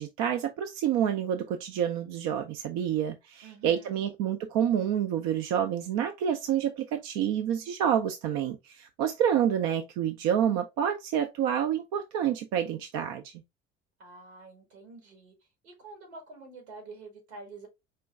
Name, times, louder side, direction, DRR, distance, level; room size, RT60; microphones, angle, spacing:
voice 1, 0.0-13.3, right 9 dB, 55° right, 0.6 m, -28 dB
voice 2, 3.4-4.0 14.0-15.3 15.6-17.7, right 3 dB, 75° right, 2.0 m, -47 dB
4.4 x 3.0 x 3.4 m
figure-of-eight pair, 60°, 32 cm